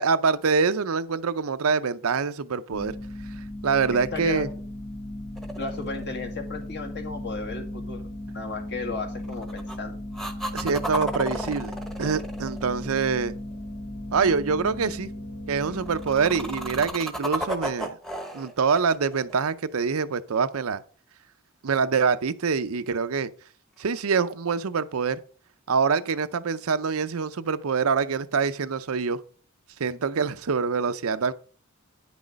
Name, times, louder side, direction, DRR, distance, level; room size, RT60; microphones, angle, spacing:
voice 1, 0.0-2.9 3.6-4.5 10.5-13.3 14.1-15.1 15.5-18.0 18.3-20.8 21.6-23.3 23.8-25.2 25.7-29.2 29.8-31.3, right 5 dB, 80° right, 0.6 m, -25 dB
sound 1, 2.7-16.9, left 1 dB, 75° left, 3.1 m, -36 dB
voice 2, 3.9-4.4 5.6-8.0 8.3-10.0, left 3 dB, 55° left, 2.0 m, -34 dB
sound 2, 5.4-6.6 9.2-9.8 10.1-13.4 15.7-20.0 23.8-23.9, equal, ahead, 1.0 m, -34 dB
9.6 x 6.2 x 5.1 m
head